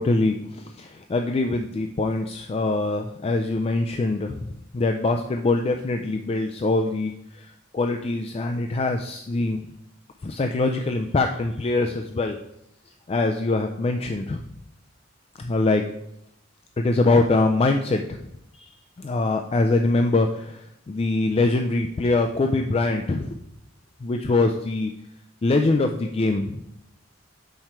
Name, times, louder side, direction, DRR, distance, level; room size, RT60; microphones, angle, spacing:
voice 1, 0.0-9.7 10.2-12.4 13.1-14.4 15.4-15.8 16.8-18.3 18.5-18.7 19.0-23.4 24.0-24.9 25.4-26.6, left 2 dB, 30° left, 5 dB, 0.3 m, -23 dB
7.7 x 4.3 x 4.5 m, 0.80 s
head